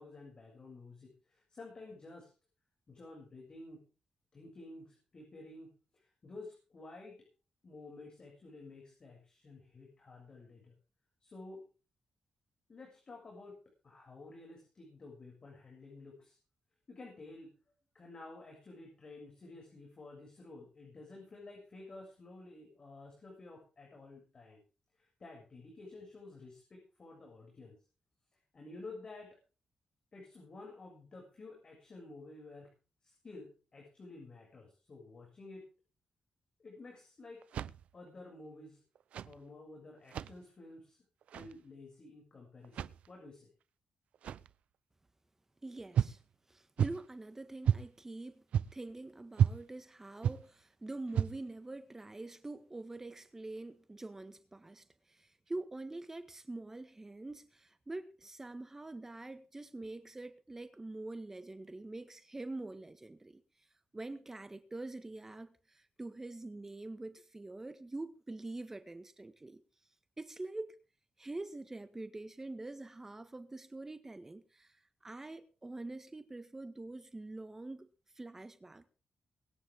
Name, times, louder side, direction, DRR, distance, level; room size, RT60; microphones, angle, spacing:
voice 1, 0.0-2.3 2.9-3.9 4.3-7.3 7.6-10.8 11.2-11.7 12.7-13.6 13.8-16.4 16.9-17.6 17.9-24.6 24.9-27.8 28.5-29.4 30.1-32.7 33.0-35.7 36.6-37.4 37.9-38.8 39.2-41.0 41.3-43.5, left 2 dB, 40° left, 7.0 m, -52 dB
sound 1, 37.4-38.1 38.9-39.4 40.0-40.4 41.2-41.6 42.6-43.1 44.1-44.5 45.9-46.2 46.8-47.1 47.6-47.9 48.5-48.9 49.4-49.6 50.2-50.5 51.1-51.5, right 9 dB, 85° right, 0.7 m, -32 dB
voice 2, 45.6-46.2 46.5-48.4 48.7-63.4 63.9-69.6 70.2-70.8 71.2-77.9 78.2-78.9, right 2 dB, 20° right, 1.7 m, -45 dB
23.5 x 10.5 x 3.7 m
cardioid pair, 90°, 2 cm